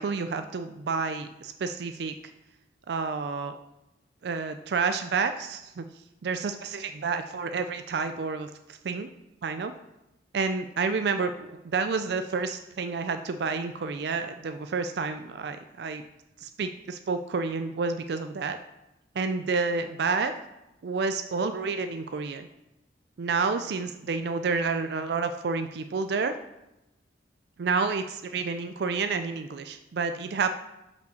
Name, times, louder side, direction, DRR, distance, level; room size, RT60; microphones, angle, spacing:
voice 1, 0.0-2.1 2.9-3.6 4.2-5.8 6.2-9.1 9.4-9.7 10.3-16.0 16.4-18.6 19.2-20.3 20.8-22.5 23.2-26.3 27.6-30.6, right 4 dB, 65° right, 8 dB, 0.4 m, -29 dB
5.3 x 5.1 x 6.3 m, 0.92 s
head